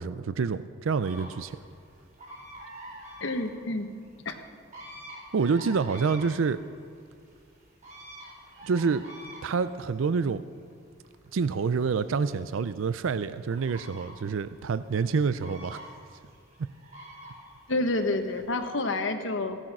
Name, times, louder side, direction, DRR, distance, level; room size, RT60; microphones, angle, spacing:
voice 1, 0.0-1.6 5.3-6.6 8.6-9.1 9.4-10.5 11.3-15.8, right 5 dB, 85° right, 14 dB, 0.4 m, -27 dB
sound 1, 1.0-18.7, equal, 40° right, 4.2 m, -48 dB
voice 2, 3.2-3.9 4.2-4.4 17.7-19.6, left 2 dB, 75° left, 6 dB, 1.2 m, -29 dB
16.0 x 11.5 x 6.0 m, 2.2 s
head